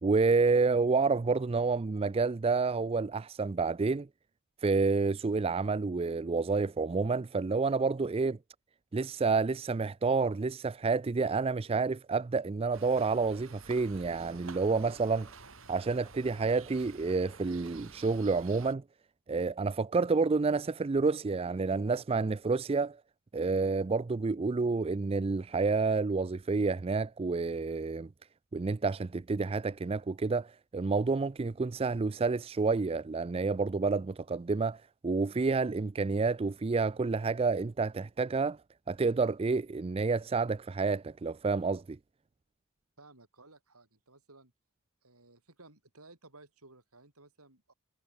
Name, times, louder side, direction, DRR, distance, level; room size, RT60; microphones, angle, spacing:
voice 1, 0.0-4.1 4.6-8.4 8.9-15.3 15.7-18.8 19.3-23.0 23.3-28.1 28.5-38.6 38.9-42.0, right 4 dB, 25° right, 0.4 m, -29 dB
sound 1, 12.7-18.7, right 4 dB, 65° right, 5.1 m, -51 dB
voice 2, 43.0-44.5 45.0-47.7, right 2 dB, 85° right, 7.1 m, -57 dB
head